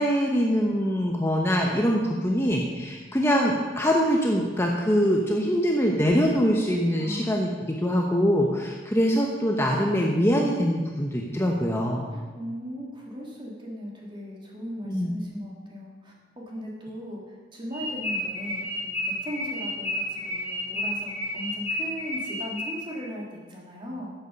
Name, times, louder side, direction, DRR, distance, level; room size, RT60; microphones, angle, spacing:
voice 1, 0.0-12.1 14.8-15.1, equal, 15° left, 0 dB, 0.9 m, -23 dB
voice 2, 7.0-7.4 12.1-17.2 17.5-24.1, equal, 25° right, -3 dB, 2.6 m, -38 dB
sound 1, 17.7-23.0, left 1 dB, 10° right, 3.7 m, -31 dB
13.0 x 8.2 x 5.3 m, 1.3 s
head